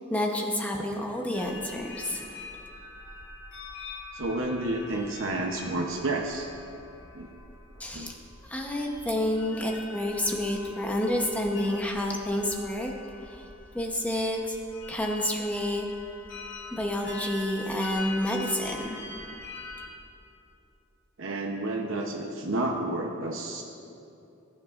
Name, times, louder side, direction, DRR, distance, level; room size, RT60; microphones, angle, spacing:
voice 1, 0.0-2.4 7.8-8.2 8.4-12.9 13.3-13.4 13.7-14.6 14.9-15.9 16.7-19.3, left 1 dB, 5° left, 1 dB, 0.8 m, -29 dB
sound 1, 1.3-19.8, left 3 dB, 65° left, 2.8 m, -43 dB
voice 2, 4.1-6.5 7.1-7.3 7.9-8.1 21.2-23.6, right 2 dB, 70° right, 1 dB, 0.8 m, -30 dB
20.0 x 9.5 x 2.5 m, 2.7 s
head